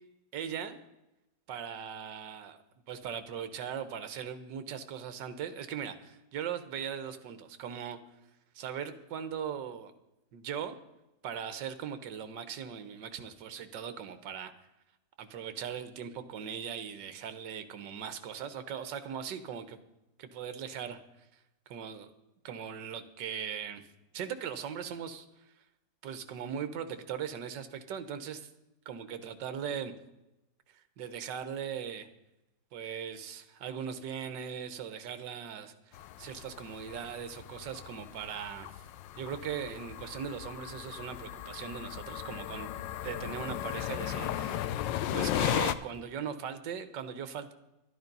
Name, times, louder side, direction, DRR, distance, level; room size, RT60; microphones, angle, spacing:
voice 1, 0.3-0.8 1.5-2.6 2.9-8.0 8.5-9.9 10.3-10.8 11.2-14.5 15.2-19.8 20.2-21.0 21.7-22.1 22.4-23.8 24.1-25.3 26.0-28.5 28.8-29.9 30.7-32.1 32.7-38.7 39.2-42.7 43.0-47.5, right 8 dB, 75° right, 10 dB, 1.6 m, -39 dB
sound 1, 35.9-45.7, left 11 dB, 85° left, 1.3 m, -36 dB
12.0 x 11.5 x 5.4 m, 0.92 s
omnidirectional pair, 2.0 m